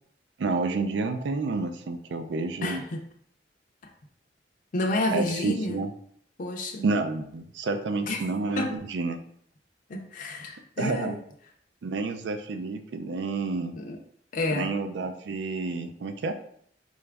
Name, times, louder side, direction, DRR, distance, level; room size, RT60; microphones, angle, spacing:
voice 1, 0.4-2.8 5.1-5.9 6.8-9.2 10.8-11.2 11.8-13.8 14.5-16.3, right 3 dB, 75° right, 9 dB, 0.4 m, -29 dB
voice 2, 2.6-3.0 4.7-5.8 6.4-6.9 8.0-8.2 8.6-8.7 9.9-11.2 13.7-14.0 14.3-14.7, left 2 dB, 45° left, 2 dB, 0.4 m, -30 dB
4.0 x 2.4 x 3.3 m, 0.66 s
head